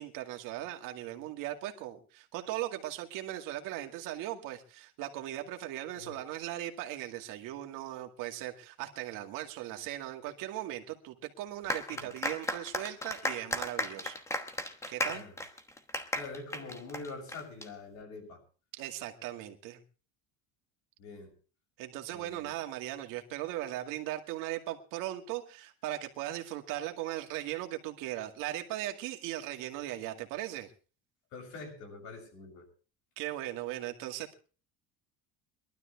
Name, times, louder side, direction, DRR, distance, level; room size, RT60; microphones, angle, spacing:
voice 1, 0.0-14.2 14.9-15.2 18.7-19.8 21.8-30.7 33.2-34.3, right 14 dB, 65° right, 5 dB, 2.2 m, -38 dB
sound 1, 11.7-17.7, left 1 dB, 10° left, 1.2 m, -35 dB
voice 2, 16.1-18.4 21.0-21.3 22.1-22.6 31.3-32.7, left 3 dB, 55° left, 2 dB, 6.9 m, -45 dB
22.5 x 12.5 x 3.4 m, 0.37 s
cardioid pair, 180°, 35 cm